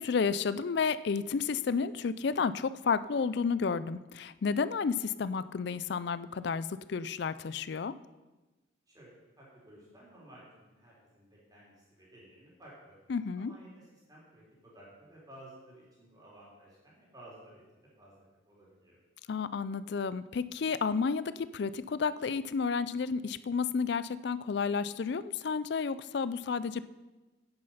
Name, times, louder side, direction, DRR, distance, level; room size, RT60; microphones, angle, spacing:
voice 1, 0.0-8.0 13.1-13.5 19.3-26.8, left 5 dB, 55° left, 16 dB, 0.4 m, -31 dB
voice 2, 8.9-13.0 13.3-19.0, right 1 dB, 20° right, -5 dB, 3.8 m, -55 dB
9.7 x 9.7 x 5.6 m, 1.2 s
head